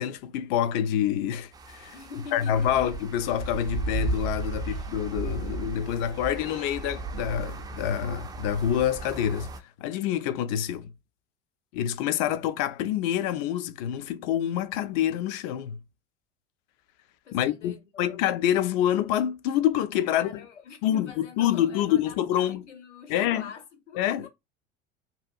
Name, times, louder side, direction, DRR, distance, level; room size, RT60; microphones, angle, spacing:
voice 1, 0.0-2.0 2.3-9.5 9.8-10.9 11.7-15.8 17.3-20.3 20.8-22.6 23.1-23.4 24.0-24.3, left 10 dB, 50° left, 0.4 m, -27 dB
sound 1, 1.5-9.6, right 3 dB, 10° right, 0.3 m, -35 dB
voice 2, 1.9-2.8 4.6-4.9 17.2-18.1 20.1-24.3, left 6 dB, 80° left, 0.8 m, -45 dB
2.8 x 2.3 x 2.5 m
figure-of-eight pair, 75°, 36 cm